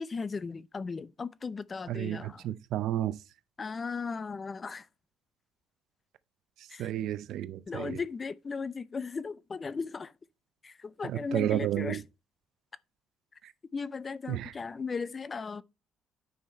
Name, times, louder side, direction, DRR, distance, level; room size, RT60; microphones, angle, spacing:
voice 1, 0.0-2.5 3.6-4.9 6.7-6.9 7.7-10.1 10.6-12.0 13.7-15.6, left 4 dB, 25° left, 0.4 m, -36 dB
voice 2, 1.9-3.2 6.8-8.0 11.0-12.0 14.3-14.5, right 12 dB, 65° right, 0.6 m, -31 dB
9.5 x 5.7 x 4.3 m
cardioid pair, 140°, 0 cm